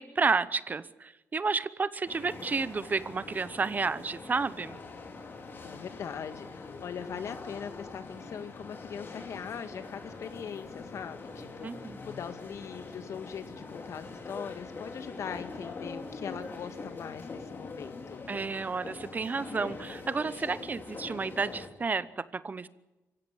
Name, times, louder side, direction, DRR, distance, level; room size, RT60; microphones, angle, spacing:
voice 1, 0.0-4.8 11.6-12.0 18.3-22.7, right 4 dB, 30° right, 16 dB, 0.9 m, -31 dB
sound 1, 2.1-21.7, left 3 dB, 40° left, 3.6 m, -43 dB
voice 2, 5.6-18.2, left 7 dB, 65° left, 10 dB, 1.8 m, -41 dB
25.5 x 15.5 x 9.9 m, 1.1 s
cardioid pair, 95°, 5 cm